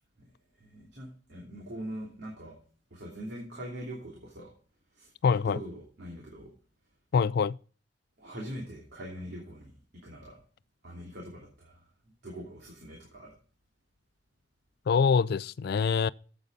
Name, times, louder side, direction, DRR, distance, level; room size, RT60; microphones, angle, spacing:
voice 1, 0.2-2.6 2.9-4.5 4.9-5.1 5.4-6.5 8.2-9.7 10.0-10.4 10.8-11.9 12.2-13.3, equal, 60° right, 2.8 m, -42 dB
voice 2, 5.2-5.6 7.1-7.6 14.9-16.1, left 6 dB, 60° left, 0.3 m, -24 dB
8.5 x 8.0 x 5.4 m
head